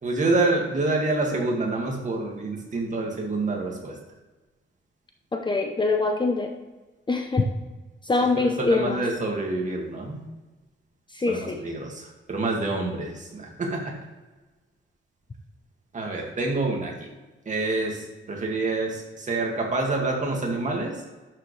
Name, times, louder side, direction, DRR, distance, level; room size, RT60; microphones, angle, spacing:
voice 1, 0.0-4.0 8.4-10.2 11.3-14.0 15.9-17.1 17.5-21.0, right 2 dB, 35° right, 0 dB, 2.1 m, -27 dB
voice 2, 5.3-6.5 7.1-7.5 8.1-9.0 11.1-11.6, left 3 dB, 20° left, 4 dB, 0.7 m, -24 dB
11.5 x 6.8 x 3.3 m, 1.2 s
wide cardioid pair, 155°, 21 cm